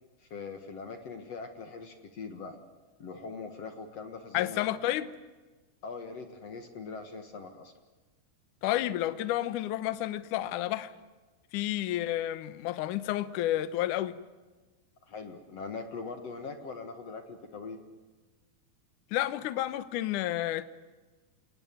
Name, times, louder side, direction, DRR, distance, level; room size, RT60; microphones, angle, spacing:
voice 1, 0.2-2.6 3.0-4.6 5.8-7.7 15.0-17.8, left 4 dB, 50° left, 7 dB, 2.1 m, -41 dB
voice 2, 4.3-5.1 8.6-10.9 11.5-14.2 19.1-20.6, left 14 dB, 70° left, 13 dB, 2.1 m, -30 dB
27.5 x 19.5 x 9.2 m, 1.3 s
omnidirectional pair, 4.7 m